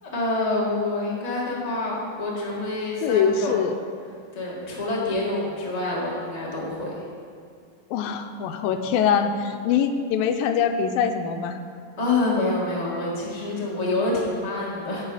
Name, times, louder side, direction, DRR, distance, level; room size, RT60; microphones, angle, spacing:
voice 1, 0.0-3.6 4.3-7.0 12.0-15.0, left 2 dB, 25° left, -5 dB, 0.8 m, -27 dB
voice 2, 3.0-3.8 7.9-11.6, left 7 dB, 90° left, 6 dB, 2.3 m, -23 dB
9.0 x 8.7 x 4.9 m, 2.2 s
omnidirectional pair, 4.0 m